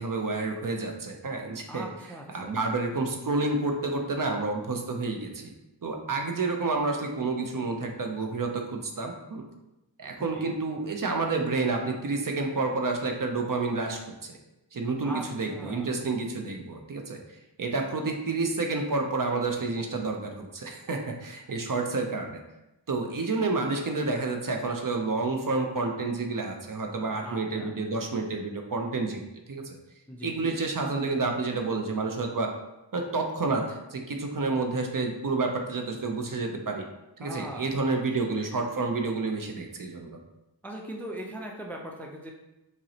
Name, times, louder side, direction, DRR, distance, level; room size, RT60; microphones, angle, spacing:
voice 1, 0.0-1.9 2.3-5.5 5.8-9.4 10.0-14.4 14.7-17.2 17.6-22.4 22.9-29.2 29.5-29.8 30.2-32.5 32.9-36.9 37.2-40.2, right 3 dB, 45° right, 3 dB, 0.5 m, -29 dB
voice 2, 1.7-2.6 10.3-10.5 15.0-16.0 27.2-27.7 30.1-30.6 37.2-37.8 38.3-38.5 40.6-42.3, right 1 dB, 5° left, 1 dB, 0.3 m, -40 dB
5.3 x 2.1 x 2.7 m, 0.96 s
wide cardioid pair, 70°, 45 cm